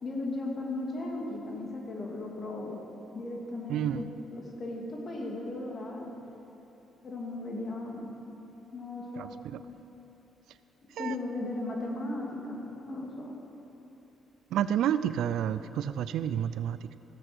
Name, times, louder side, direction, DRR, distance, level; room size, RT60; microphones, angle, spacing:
voice 1, 0.0-2.8 3.1-6.1 7.0-8.1 8.7-9.3 11.0-13.3, left 2 dB, 45° left, -1 dB, 2.5 m, -36 dB
voice 2, 3.7-4.0 9.2-9.6 11.0-11.1 14.5-17.0, right 10 dB, 80° right, 13 dB, 0.4 m, -30 dB
15.5 x 7.9 x 6.1 m, 3.0 s
cardioid pair, 90°, 0 cm